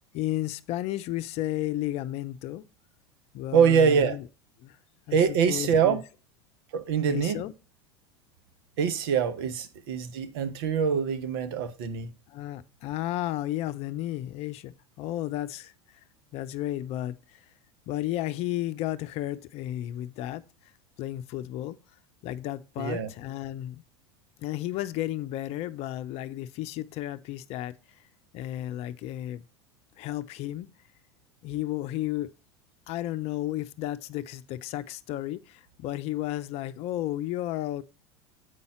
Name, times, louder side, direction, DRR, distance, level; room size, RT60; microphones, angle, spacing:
voice 1, 0.1-2.7 3.3-4.3 4.6-4.8 5.1-6.0 7.1-7.5 12.3-16.0 16.3-17.4 17.9-20.4 21.0-21.8 22.2-23.8 24.4-28.1 28.3-29.4 30.0-30.7 31.4-32.3 32.9-37.8, left 14 dB, 50° left, 0.7 m, -33 dB
voice 2, 3.5-4.2 5.1-6.0 6.7-7.4 8.8-12.1 22.8-23.1, right 7 dB, 65° right, 1.1 m, -24 dB
8.3 x 5.5 x 4.4 m
hypercardioid pair, 80°, 14 cm